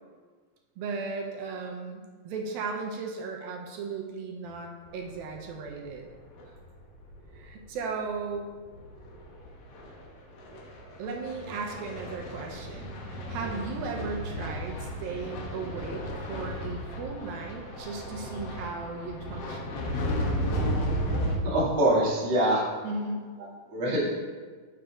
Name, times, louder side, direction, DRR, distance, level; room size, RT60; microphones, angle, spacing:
voice 1, 0.8-6.1 7.3-8.5 11.0-19.9 22.8-23.3, right 4 dB, 90° right, 1 dB, 2.6 m, -36 dB
sound 1, 4.9-6.6 6.9-7.8 8.3-21.4, equal, 80° left, 1.3 m, -34 dB
voice 2, 21.4-22.6 23.7-24.1, right 1 dB, 35° right, -9 dB, 2.9 m, -24 dB
9.6 x 6.9 x 2.5 m, 1.5 s
omnidirectional pair, 4.1 m